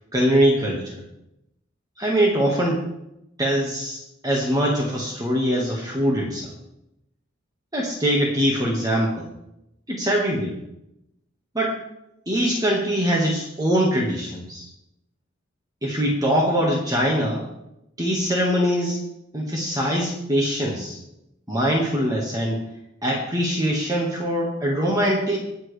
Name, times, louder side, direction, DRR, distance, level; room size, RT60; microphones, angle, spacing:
voice 1, 0.1-1.0 2.0-2.8 3.4-6.5 7.7-9.3 9.9-10.6 11.5-11.8 12.3-14.7 15.8-17.5 18.0-19.0 19.3-21.0 21.5-22.6 23.0-25.4, equal, 20° right, -2 dB, 1.8 m, -22 dB
22.0 x 7.6 x 3.4 m, 0.85 s
head